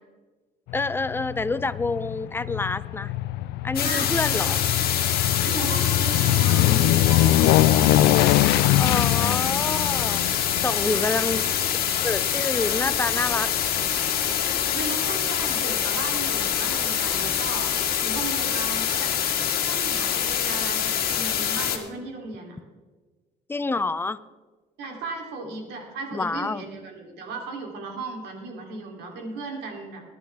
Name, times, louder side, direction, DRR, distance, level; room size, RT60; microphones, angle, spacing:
Aircraft, 0.7-13.2 13.6-13.7, left 15 dB, 80° left, 0.4 m, -23 dB
voice 1, 0.7-3.1 3.6-4.6 8.8-10.2 10.6-11.6 12.0-13.5 23.5-24.2 26.1-26.6, left 3 dB, 15° left, 14 dB, 0.5 m, -27 dB
sound 1, 3.8-21.8, left 9 dB, 65° left, 1.9 m, -25 dB
voice 2, 3.8-4.7 5.4-7.5 10.9-11.4 14.7-17.7 18.0-19.1 19.6-22.6 24.8-30.0, right 3 dB, 85° right, 1 dB, 3.3 m, -36 dB
21.0 x 10.5 x 3.5 m, 1.3 s
cardioid pair, 110°, 17 cm